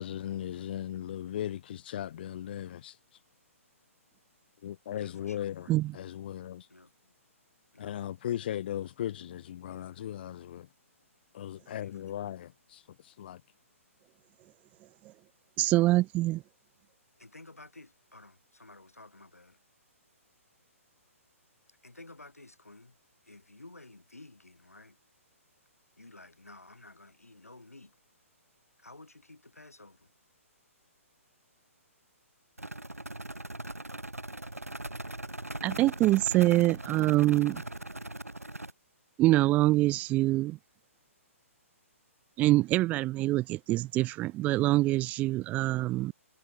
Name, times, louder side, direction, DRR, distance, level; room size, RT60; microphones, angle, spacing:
voice 1, 0.0-2.9 4.6-5.5 6.0-6.7 7.8-10.6 11.3-12.8 13.2-13.4, left 11 dB, 45° left, 0.8 m, -37 dB
voice 2, 4.9-5.8 6.7-7.1 7.7-8.0 11.7-12.1 17.2-19.6 21.7-23.0 23.2-25.0 26.0-27.9 28.8-30.1, left 2 dB, 80° left, 6.5 m, -53 dB
voice 3, 15.6-16.4 35.6-37.6 39.2-40.6 42.4-46.1, right 17 dB, 20° right, 0.7 m, -25 dB
sound 1, 32.6-38.7, right 1 dB, 90° right, 1.1 m, -40 dB
figure-of-eight pair, 130°, 8 cm